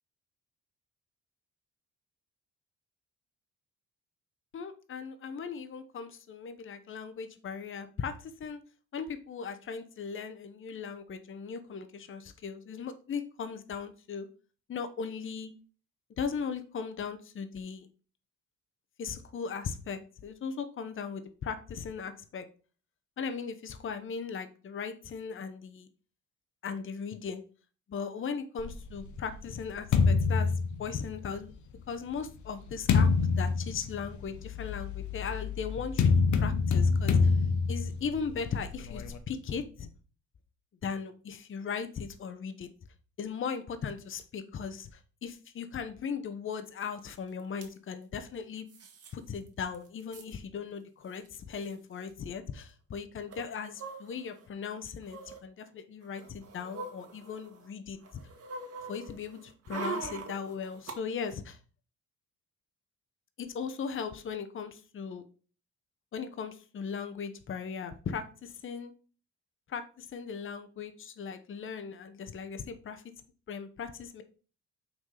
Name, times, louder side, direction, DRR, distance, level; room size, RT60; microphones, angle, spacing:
voice 1, 4.5-8.6 8.9-14.3 14.7-15.5 16.2-17.9 19.0-22.5 23.2-25.9 26.6-27.4 27.9-30.5 30.8-31.5 31.9-36.1 36.4-37.4 37.7-39.9 40.8-42.7 43.2-48.7 49.1-58.0 58.9-61.6 63.4-65.2 66.1-68.9 69.7-73.0 73.5-74.2, left 6 dB, 40° left, 8 dB, 0.8 m, -38 dB
sound 1, 28.6-31.4 32.1-39.2, left 5 dB, 70° left, 1.0 m, -27 dB
sound 2, 47.1-47.2 47.4-47.7 48.7-49.1 49.5-49.6 49.7-50.3 51.2-51.3 51.5-51.7 53.3-54.4 55.0-55.4 56.0-57.7 58.0-61.0 61.3-61.4, right 4 dB, 55° right, 1.6 m, -42 dB
5.8 x 3.8 x 5.7 m, 0.38 s
cardioid pair, 90°, 30 cm